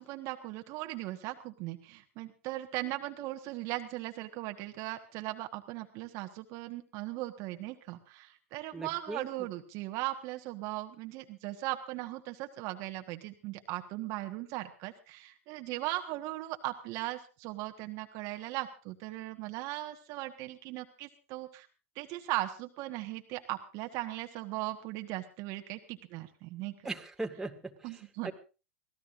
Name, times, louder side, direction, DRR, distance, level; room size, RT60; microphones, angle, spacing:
voice 1, 0.0-21.7 21.9-26.9 27.8-28.3, right 17 dB, 50° right, 6 dB, 1.4 m, -38 dB
voice 2, 8.7-9.3 26.8-27.7 28.2-28.3, right 2 dB, 5° right, 3 dB, 2.0 m, -38 dB
24.5 x 17.0 x 2.6 m, 0.34 s
hypercardioid pair, 100°, 7 cm